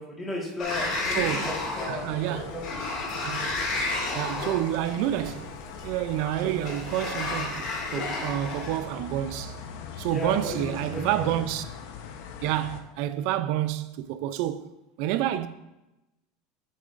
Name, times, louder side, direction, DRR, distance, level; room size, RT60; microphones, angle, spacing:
voice 1, 0.0-2.0 2.3-2.9 10.1-11.3, left 1 dB, 10° left, 1.6 m, -35 dB
Sliding door, 0.6-8.8, left 2 dB, 35° left, 2.3 m, -32 dB
sound 1, 0.7-12.8, left 5 dB, 60° left, 0.9 m, -41 dB
voice 2, 1.1-1.5 1.9-2.5 3.2-3.6 4.1-5.5 5.8-9.6 10.0-11.7 12.4-14.7 15.0-15.5, right 13 dB, 50° right, 0.4 m, -29 dB
10.5 x 8.3 x 2.6 m
supercardioid pair, 180°, 0 cm